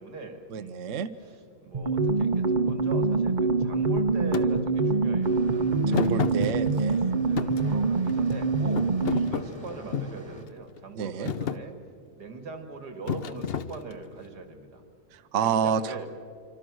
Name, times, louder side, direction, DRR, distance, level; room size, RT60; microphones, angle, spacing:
voice 1, 0.0-6.1 7.3-11.8 12.1-14.8 15.4-16.1, right 4 dB, 90° right, 7 dB, 2.8 m, -41 dB
voice 2, 0.5-1.1 5.9-7.0 10.9-11.3 15.1-16.0, right 7 dB, 55° right, 9 dB, 1.1 m, -29 dB
sound 1, 1.7-9.4, right 4 dB, 35° right, 1.1 m, -25 dB
Thump thud, 4.3-4.5 5.9-7.0 7.4-8.4 8.8-10.2 10.8-11.0 11.3-11.6 13.1-14.1, left 7 dB, 50° left, 0.8 m, -31 dB
sound 2, 5.2-10.5, right 2 dB, 15° right, 1.7 m, -43 dB
26.0 x 25.5 x 6.3 m, 2.3 s
omnidirectional pair, 1.7 m